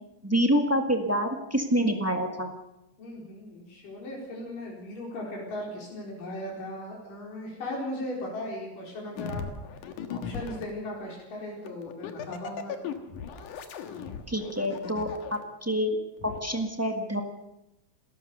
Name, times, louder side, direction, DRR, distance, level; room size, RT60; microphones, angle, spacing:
voice 1, 0.2-2.5 14.3-16.0 16.2-17.2, equal, 15° right, 4 dB, 0.4 m, -27 dB
voice 2, 3.0-9.4 10.1-12.7, left 1 dB, 90° left, -2 dB, 6.1 m, -37 dB
sound 1, 9.2-10.7 11.7-15.4 16.2-16.4, left 6 dB, 75° left, 3.0 m, -37 dB
30.0 x 13.5 x 6.8 m, 0.89 s
omnidirectional pair, 3.7 m